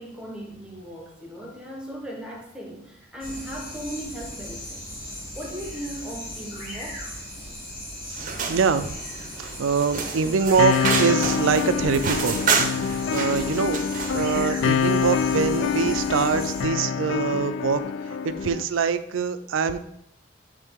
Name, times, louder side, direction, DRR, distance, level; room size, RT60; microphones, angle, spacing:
voice 1, 0.0-4.8 5.3-7.0, right 1 dB, 5° right, -1 dB, 0.9 m, -37 dB
sound 1, 3.2-16.6, left 1 dB, 50° left, 2.4 m, -38 dB
voice 2, 8.1-8.9 9.4-12.5 12.9-19.8, right 5 dB, 80° right, 11 dB, 0.4 m, -24 dB
sound 2, 8.2-14.3, right 5 dB, 40° right, 0.6 m, -29 dB
sound 3, 10.6-18.6, left 6 dB, 70° left, 0.3 m, -26 dB
8.3 x 3.3 x 3.5 m, 0.75 s
head